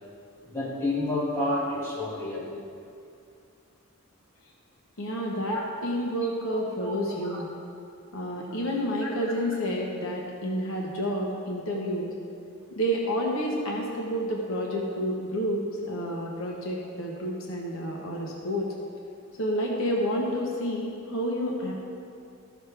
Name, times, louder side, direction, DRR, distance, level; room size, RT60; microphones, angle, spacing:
voice 1, 0.4-2.5 5.5-5.6 7.1-7.4 9.0-9.1, left 1 dB, 10° left, -9 dB, 2.5 m, -30 dB
voice 2, 5.0-7.5 8.1-12.1 12.7-18.7 19.4-21.7, equal, 70° left, -2 dB, 1.2 m, -29 dB
14.0 x 6.4 x 3.5 m, 2.4 s
head